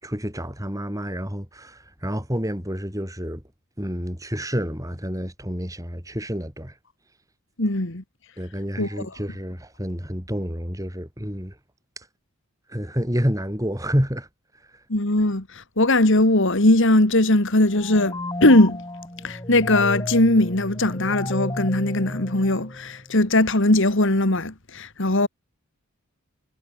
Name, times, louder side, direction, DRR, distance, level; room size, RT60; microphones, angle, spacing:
voice 1, 0.0-3.4 3.8-6.7 8.4-11.5 12.0-12.1 12.7-14.3, equal, 15° right, 6.8 m, -29 dB
voice 2, 7.6-8.0 8.8-9.1 14.9-18.8 19.2-25.3, left 1 dB, 55° left, 2.2 m, -20 dB
sound 1, 17.7-23.1, left 1 dB, 20° left, 4.2 m, -33 dB
head